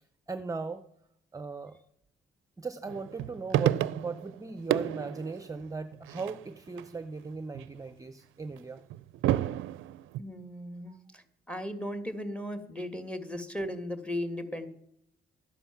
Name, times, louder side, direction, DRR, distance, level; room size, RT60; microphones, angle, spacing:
voice 1, 0.3-0.8 1.3-1.8 2.6-8.8 10.9-11.0, right 4 dB, 15° right, 11 dB, 0.7 m, -38 dB
sound 1, 2.9-4.4 4.7-6.8 7.2-7.8 8.6-10.2, right 13 dB, 80° right, 0.5 m, -31 dB
voice 2, 10.2-14.7, left 1 dB, 5° left, 9 dB, 1.6 m, -37 dB
12.5 x 10.0 x 5.9 m, 0.73 s
cardioid pair, 90°, 20 cm